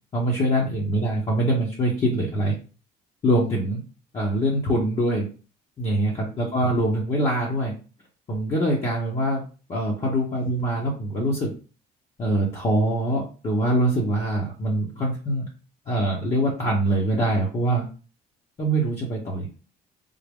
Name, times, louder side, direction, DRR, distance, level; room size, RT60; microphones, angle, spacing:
voice 1, 0.1-2.5 3.2-3.8 4.1-5.3 5.8-7.7 8.3-9.4 9.7-11.5 12.2-15.4 15.9-17.9 18.6-19.5, right 1 dB, 40° left, -4 dB, 1.1 m, -24 dB
3.7 x 2.1 x 3.6 m, 0.35 s
cardioid pair, 110°, 17 cm